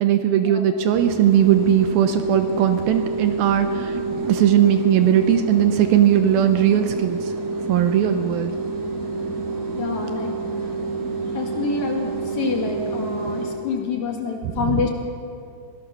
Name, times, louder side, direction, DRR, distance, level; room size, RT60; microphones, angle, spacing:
voice 1, 0.0-4.0 4.2-7.3 7.7-8.5 14.6-14.8, right 10 dB, 75° right, 8 dB, 2.4 m, -18 dB
sound 1, 0.9-13.6, right 3 dB, 55° right, 4.7 m, -28 dB
voice 2, 9.8-10.3 11.3-14.9, left 5 dB, 55° left, 1 dB, 2.9 m, -27 dB
23.5 x 17.0 x 6.7 m, 2.5 s
omnidirectional pair, 4.7 m